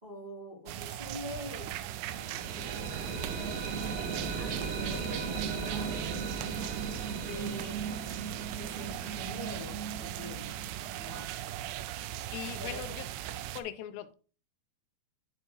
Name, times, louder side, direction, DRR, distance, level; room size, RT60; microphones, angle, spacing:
voice 1, 0.0-1.7 2.5-3.5 4.4-6.0 6.4-7.8 8.3-10.6 11.0-11.3 12.4-12.8, left 1 dB, 15° right, -6 dB, 1.9 m, -45 dB
sound 1, 0.7-13.6, right 13 dB, 85° right, 2.6 m, -39 dB
sound 2, 1.7-11.5, right 5 dB, 65° right, 3.1 m, -38 dB
voice 2, 12.2-13.1 13.6-14.2, left 11 dB, 90° left, 11 dB, 2.9 m, -40 dB
11.0 x 4.4 x 3.0 m, 0.38 s
omnidirectional pair, 4.9 m